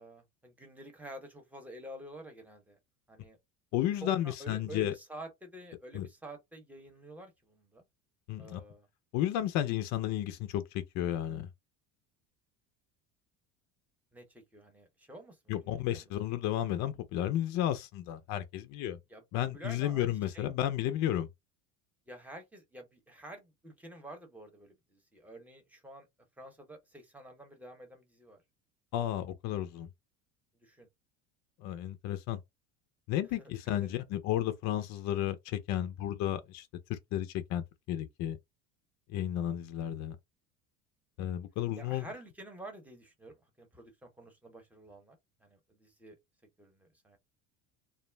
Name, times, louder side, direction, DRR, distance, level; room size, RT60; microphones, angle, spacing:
voice 1, 0.0-2.8 3.1-3.4 4.0-7.8 8.4-8.9 14.1-16.1 19.1-20.5 22.1-26.1 26.4-28.4 30.6-30.9 33.4-34.0 41.8-46.2 46.6-47.2, right 1 dB, 5° right, 0.9 m, -49 dB
voice 2, 3.7-4.9 5.9-6.1 8.3-8.6 9.1-11.5 15.5-19.0 19.3-21.3 28.9-29.9 31.6-32.4 33.1-38.4 39.1-40.2 41.2-42.1, left 12 dB, 60° left, 0.6 m, -33 dB
2.4 x 2.0 x 3.2 m
supercardioid pair, 120°, 32 cm